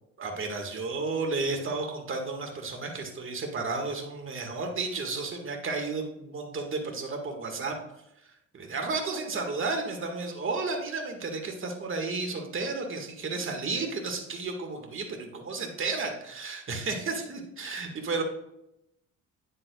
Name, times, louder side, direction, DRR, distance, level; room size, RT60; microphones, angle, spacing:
voice 1, 0.2-7.8 8.2-18.2, right 3 dB, 40° right, 3 dB, 1.7 m, -32 dB
9.7 x 7.4 x 2.3 m, 0.84 s
cardioid pair, 90°, 30 cm